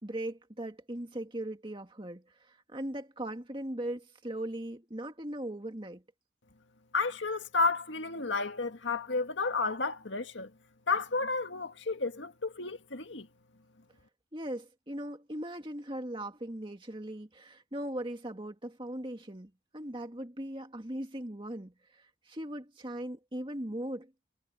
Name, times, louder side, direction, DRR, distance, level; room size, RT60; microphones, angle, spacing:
voice 1, 0.0-6.0 14.3-24.1, right 1 dB, 25° right, 2.2 m, -39 dB
voice 2, 6.9-10.5 10.9-13.3, left 4 dB, 80° left, 1.9 m, -31 dB
head